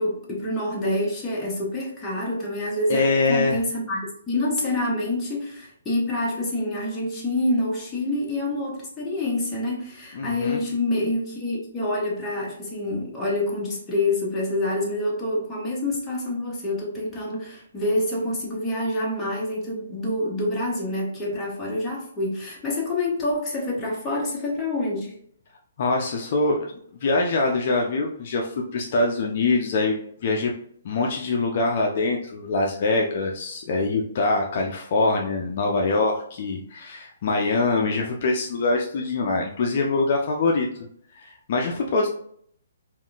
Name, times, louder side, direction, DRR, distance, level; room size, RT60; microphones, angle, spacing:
voice 1, 0.0-25.2, left 1 dB, 10° left, -5 dB, 0.7 m, -27 dB
voice 2, 2.9-3.6 10.1-10.6 25.8-30.5 30.8-40.7 41.2-42.1, left 3 dB, 40° left, 1 dB, 0.4 m, -24 dB
3.5 x 2.4 x 2.3 m, 0.63 s
hypercardioid pair, 170°, 0 cm